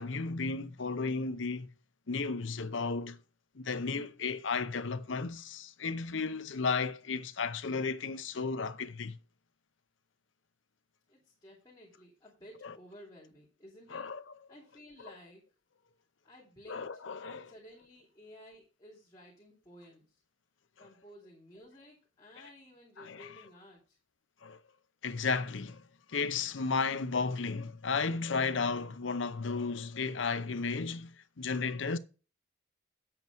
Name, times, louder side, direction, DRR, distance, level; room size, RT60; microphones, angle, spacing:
voice 1, 0.0-1.7 2.1-3.2 3.5-9.2 12.6-12.7 13.9-14.2 16.7-17.5 20.8-20.9 23.0-23.4 24.4-24.6 25.0-25.8 26.1-32.0, left 4 dB, 75° left, 0.7 m, -34 dB
voice 2, 11.1-14.1 14.5-15.4 16.2-20.2 20.8-24.0, equal, 20° left, 2.8 m, -55 dB
9.4 x 7.9 x 4.6 m
head